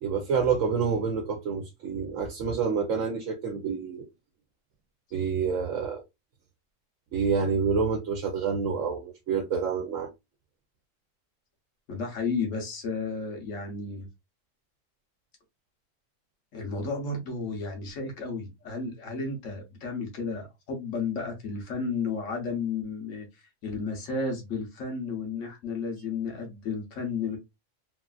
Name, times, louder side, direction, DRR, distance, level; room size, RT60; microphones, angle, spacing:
voice 1, 0.0-4.1 5.1-6.0 7.1-10.1, right 6 dB, 85° right, 1.0 m, -28 dB
voice 2, 11.9-14.1 16.5-27.4, left 4 dB, 90° left, 1.3 m, -33 dB
3.2 x 2.4 x 2.3 m
omnidirectional pair, 1.3 m